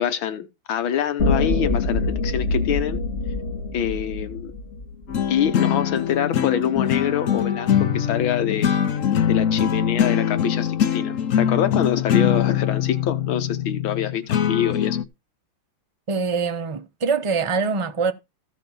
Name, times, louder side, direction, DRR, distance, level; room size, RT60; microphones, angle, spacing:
voice 1, 0.0-3.0 3.7-4.5 5.3-8.7 9.3-15.0, left 9 dB, 80° left, 1.7 m, -25 dB
sound 1, 1.2-5.5, left 3 dB, 35° left, 2.0 m, -25 dB
sound 2, 5.1-15.0, left 9 dB, 60° left, 0.9 m, -22 dB
voice 2, 16.1-18.1, right 5 dB, 30° right, 0.5 m, -24 dB
14.5 x 5.2 x 5.4 m
omnidirectional pair, 2.2 m